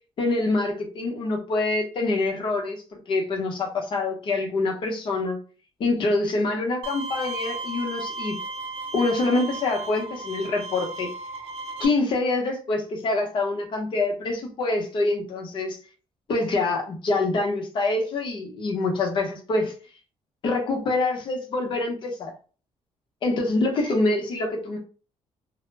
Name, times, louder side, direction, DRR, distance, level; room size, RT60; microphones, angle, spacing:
voice 1, 0.2-2.8 3.1-5.4 5.8-8.4 8.9-11.1 11.8-15.8 16.3-19.7 20.4-22.3 23.2-24.8, left 2 dB, 45° left, 2 dB, 0.7 m, -25 dB
Bowed string instrument, 6.8-11.9, right 2 dB, 55° right, 0.4 m, -35 dB
2.1 x 2.0 x 3.1 m, 0.36 s
cardioid pair, 170°, 12 cm